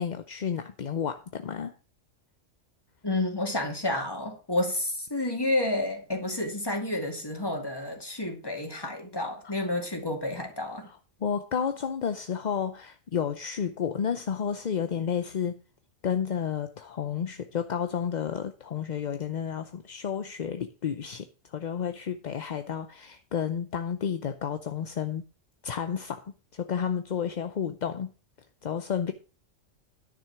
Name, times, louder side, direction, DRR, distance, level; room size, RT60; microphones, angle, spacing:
voice 1, 0.0-1.7 10.9-15.6 16.0-25.2 25.6-26.2 26.5-28.1 28.6-29.1, left 7 dB, 45° left, 0.6 m, -31 dB
voice 2, 3.0-10.9, left 1 dB, 20° left, 2.4 m, -30 dB
10.5 x 6.3 x 5.8 m
omnidirectional pair, 1.3 m